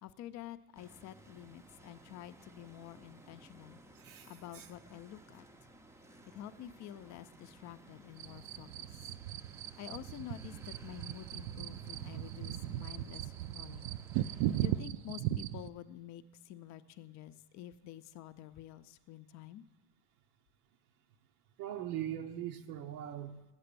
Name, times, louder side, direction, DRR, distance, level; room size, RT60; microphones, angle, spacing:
voice 1, 0.0-3.8 4.3-5.5 6.3-9.1 9.8-13.9 14.3-19.6, left 11 dB, 40° left, 11 dB, 0.5 m, -49 dB
sound 1, 0.7-14.8, right 1 dB, 5° right, 0.5 m, -58 dB
voice 2, 3.9-4.7 21.6-23.4, right 11 dB, 85° right, 4 dB, 1.0 m, -41 dB
sound 2, 8.2-15.7, right 13 dB, 60° right, 0.5 m, -38 dB
8.9 x 7.8 x 6.8 m, 1.1 s
supercardioid pair, 120°, 43 cm